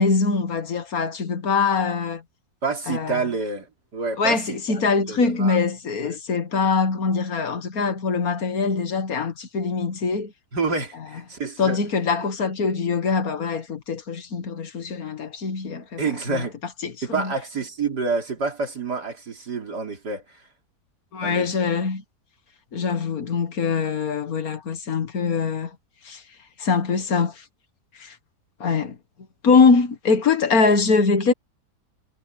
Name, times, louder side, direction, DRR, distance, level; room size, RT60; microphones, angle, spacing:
voice 1, 0.0-2.2 2.9-3.2 4.2-10.3 11.6-16.5 16.8-17.3 21.1-22.0 22.7-25.8 26.1-26.2 26.6-27.4 28.0-28.2 28.6-29.0 29.4-31.3, left 4 dB, 65° left, 1.9 m, -23 dB
voice 2, 2.6-3.7 3.9-5.6 10.5-11.8 16.0-16.6 17.0-20.2 21.2-21.5, right 4 dB, 85° right, 4.3 m, -28 dB
omnidirectional pair, 1.7 m